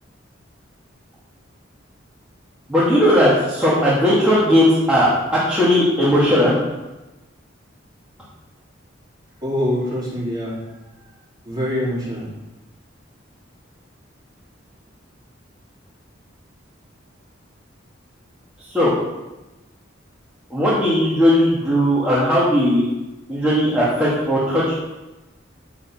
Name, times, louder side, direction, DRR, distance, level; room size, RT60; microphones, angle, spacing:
voice 1, 2.7-6.6 18.7-18.9 20.5-22.8 23.3-24.7, equal, 5° right, -10 dB, 2.5 m, -17 dB
voice 2, 9.4-10.6 11.4-12.3, left 1 dB, 20° right, -8 dB, 4.6 m, -24 dB
8.8 x 7.2 x 7.4 m, 1.1 s
head